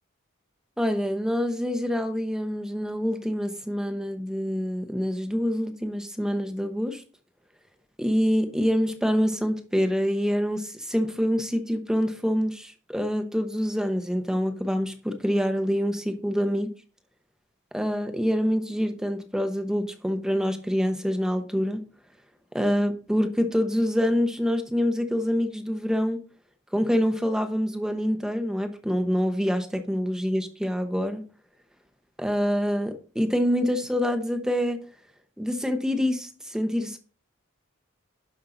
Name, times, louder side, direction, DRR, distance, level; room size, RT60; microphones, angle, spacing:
voice 1, 0.8-7.0 8.0-16.7 17.7-21.8 22.5-26.2 26.7-31.2 32.2-34.8 35.4-37.0, equal, 5° right, 1.0 m, -26 dB
11.5 x 5.7 x 3.9 m
head